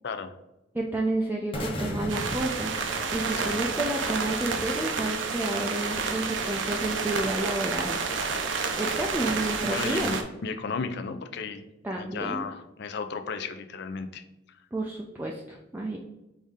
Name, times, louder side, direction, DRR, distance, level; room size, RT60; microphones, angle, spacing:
voice 1, 0.7-2.7 3.1-8.0 8.8-10.1 11.8-12.4 14.7-16.0, right 2 dB, 10° right, -1 dB, 0.3 m, -30 dB
sound 1, 1.5-3.6, left 1 dB, 30° left, 0.9 m, -35 dB
sound 2, 2.1-10.2, right 4 dB, 75° right, 0.6 m, -30 dB
voice 2, 9.7-11.6 11.9-14.2, left 5 dB, 60° left, 8 dB, 0.4 m, -34 dB
5.0 x 2.7 x 3.6 m, 0.97 s
head